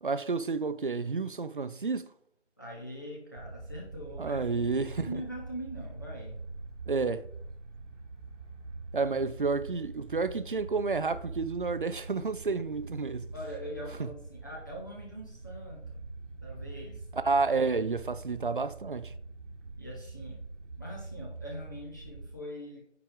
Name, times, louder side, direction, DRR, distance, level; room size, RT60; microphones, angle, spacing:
voice 1, 0.0-2.1 4.2-5.2 6.9-7.2 8.9-13.3 14.0-14.1 17.1-19.1, right 4 dB, 45° right, 0.4 m, -30 dB
voice 2, 2.6-4.5 4.7-6.4 9.0-9.1 13.3-16.1 16.4-17.0 19.8-20.4 20.8-22.8, equal, 15° left, 0.7 m, -42 dB
sound 1, 3.3-22.4, right 3 dB, 80° right, 1.4 m, -44 dB
9.5 x 4.7 x 3.7 m
figure-of-eight pair, 160°, 37 cm